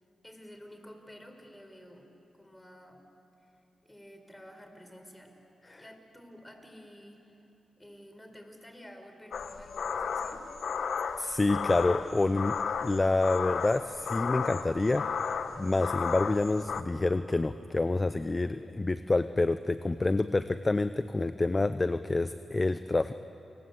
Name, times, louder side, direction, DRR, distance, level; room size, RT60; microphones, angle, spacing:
voice 1, 0.2-3.0 3.4-3.5 3.8-5.4 5.7-7.4 7.8-10.5, equal, 10° left, 5 dB, 4.7 m, -51 dB
sound 1, 9.3-16.8, left 6 dB, 70° left, 1.1 m, -34 dB
voice 2, 11.2-15.1 15.6-23.1, left 2 dB, 30° left, 12 dB, 0.7 m, -28 dB
29.0 x 20.5 x 8.2 m, 2.9 s
supercardioid pair, 50°, 0 cm